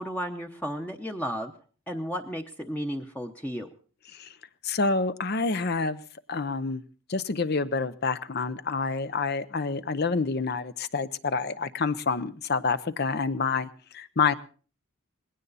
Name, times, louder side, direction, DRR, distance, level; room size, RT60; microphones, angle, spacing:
voice 1, 0.0-1.5 1.9-3.7, equal, 10° left, 4 dB, 0.9 m, -33 dB
voice 2, 4.6-6.0 6.3-6.8 7.1-13.7 13.9-14.3, left 4 dB, 50° left, 14 dB, 0.7 m, -27 dB
19.5 x 16.5 x 4.1 m, 0.40 s
head